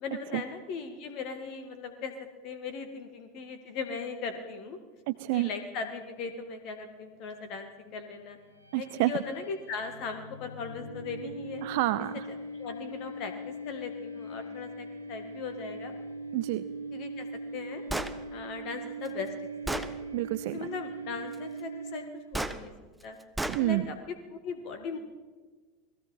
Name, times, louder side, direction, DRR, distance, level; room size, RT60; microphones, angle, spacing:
voice 1, 0.0-2.2 2.4-4.8 5.3-8.4 8.8-11.6 12.6-15.9 16.9-17.8 18.3-19.4 19.7-19.9 20.5-22.7 23.0-23.2 23.6-25.0, left 5 dB, 45° left, 8 dB, 1.9 m, -38 dB
voice 2, 5.1-5.5 8.7-9.1 11.6-12.3 16.3-16.6 20.1-20.7 23.5-23.9, right 18 dB, 55° right, 14 dB, 0.6 m, -28 dB
sound 1, 8.4-22.5, right 2 dB, 90° left, 2.3 m, -41 dB
Gunshot gunfire, 17.9-18.2 19.1-19.2 19.7-19.9 22.3-22.6 23.4-23.6, right 2 dB, 5° right, 1.3 m, -31 dB
29.5 x 20.0 x 4.5 m, 1.4 s
figure-of-eight pair, 80°, 0 cm